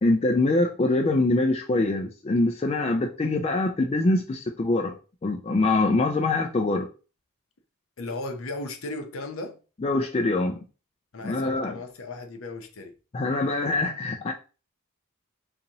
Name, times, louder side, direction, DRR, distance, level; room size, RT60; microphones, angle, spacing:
voice 1, 0.0-4.9 5.2-6.9 9.8-10.6 11.2-11.8 13.1-14.3, left 2 dB, 30° left, 0.3 m, -24 dB
voice 2, 8.0-9.6 11.1-12.9, left 2 dB, 65° left, 0.7 m, -36 dB
4.0 x 2.7 x 2.8 m
head